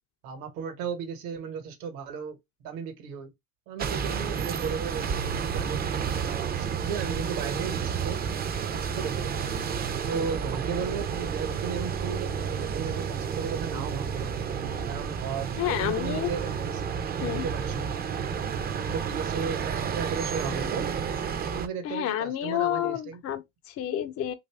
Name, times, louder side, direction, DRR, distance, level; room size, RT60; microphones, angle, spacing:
voice 1, 0.2-2.4 2.6-3.3 3.7-5.8 6.2-8.2 8.7-9.5 10.0-14.4 14.8-17.9 18.5-21.0 21.4-23.2, right 6 dB, 70° right, 1.1 m, -35 dB
sound 1, 3.8-21.7, right 7 dB, 25° right, 0.4 m, -31 dB
voice 2, 15.6-16.3 17.2-17.5 21.8-24.3, left 12 dB, 40° left, 0.4 m, -29 dB
2.8 x 2.5 x 3.3 m
supercardioid pair, 85°, 38 cm